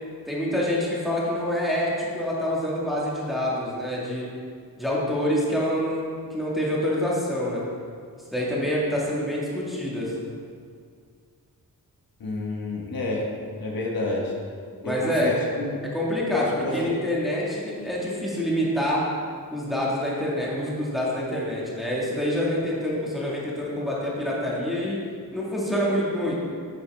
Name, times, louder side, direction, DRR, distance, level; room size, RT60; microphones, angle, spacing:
voice 1, 0.3-4.3 4.8-7.6 8.3-10.3 14.8-15.4 15.9-19.1 19.5-25.0 25.3-26.4, equal, ahead, -6 dB, 1.8 m, -26 dB
voice 2, 12.2-13.3 13.6-14.3 14.8-15.8 16.3-16.9, left 2 dB, 75° left, -2 dB, 1.5 m, -29 dB
9.7 x 8.4 x 3.5 m, 2.1 s
wide cardioid pair, 175°, 36 cm